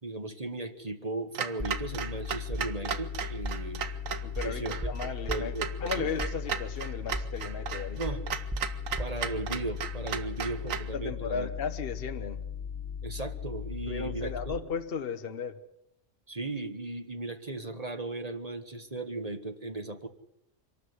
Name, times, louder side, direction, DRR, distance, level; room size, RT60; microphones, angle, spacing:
voice 1, 0.0-3.8 4.4-4.9 5.3-5.7 5.9-6.1 8.0-8.3 9.0-11.5 13.0-14.6 16.3-20.1, right 2 dB, 30° right, 7 dB, 1.7 m, -36 dB
Clock, 1.3-10.9, right 7 dB, 85° right, 1.4 m, -36 dB
sound 1, 1.6-14.5, left 5 dB, 5° left, 1.3 m, -37 dB
voice 2, 4.2-8.0 10.6-12.4 13.9-15.6, left 6 dB, 50° left, 8 dB, 1.2 m, -36 dB
25.5 x 13.0 x 9.7 m, 0.82 s
omnidirectional pair, 1.3 m